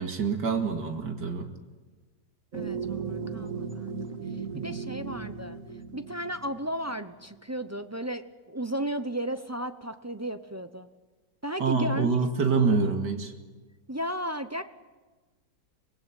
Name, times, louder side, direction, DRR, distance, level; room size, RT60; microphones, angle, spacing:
voice 1, 0.0-1.5 4.5-4.7 11.6-13.3, right 4 dB, 90° right, 5 dB, 2.9 m, -26 dB
voice 2, 2.5-3.9 4.5-5.6 5.9-8.2 8.5-10.9 11.4-12.2 12.6-12.8 13.9-14.6, right 1 dB, 25° right, 9 dB, 0.3 m, -34 dB
sound 1, 2.5-7.2, right 5 dB, 50° right, 2.2 m, -36 dB
25.0 x 19.5 x 9.2 m, 1.3 s
omnidirectional pair, 1.8 m